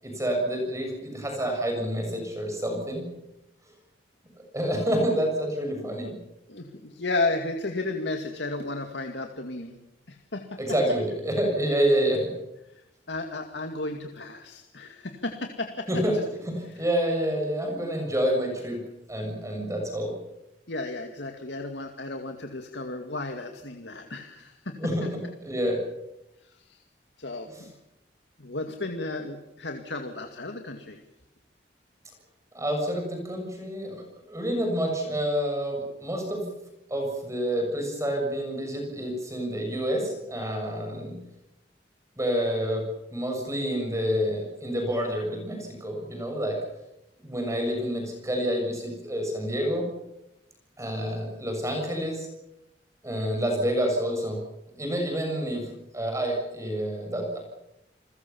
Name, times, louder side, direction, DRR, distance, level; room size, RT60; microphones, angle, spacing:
voice 1, 0.0-3.1 4.5-6.2 10.6-12.3 15.9-16.2 16.5-18.8 19.1-20.1 24.8-25.8 27.5-27.6 32.5-36.5 36.9-41.2 42.2-42.8 43.1-46.6 47.2-49.9 50.8-52.3 53.0-54.4 54.7-57.4, equal, 20° right, 2 dB, 7.0 m, -28 dB
voice 2, 6.5-9.8 10.1-10.6 13.1-15.9 16.1-16.2 16.7-16.8 20.7-24.8 26.5-26.8 27.2-27.7 28.4-31.0, left 2 dB, 85° left, 5 dB, 2.3 m, -33 dB
29.5 x 21.0 x 7.2 m, 0.89 s
head